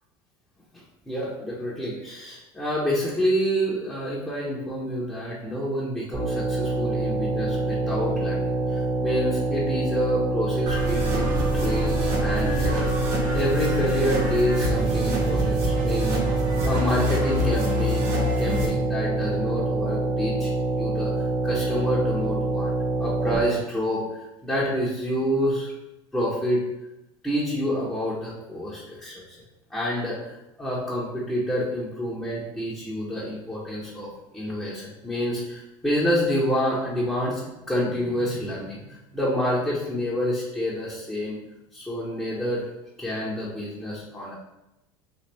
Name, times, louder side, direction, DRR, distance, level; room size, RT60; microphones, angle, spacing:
voice 1, 0.7-11.3 11.5-16.2 16.6-18.1 18.4-20.5 20.8-22.7 23.0-25.7 26.1-26.6 27.2-29.4 29.7-37.4 37.7-41.4 41.7-42.6 43.0-44.3, equal, 5° left, -8 dB, 1.0 m, -28 dB
sound 1, 6.1-23.4, right 2 dB, 10° right, 1.1 m, -26 dB
sound 2, 10.7-18.7, equal, 70° right, 1.2 m, -27 dB
4.0 x 2.6 x 3.3 m, 0.92 s
supercardioid pair, 105°, 13 cm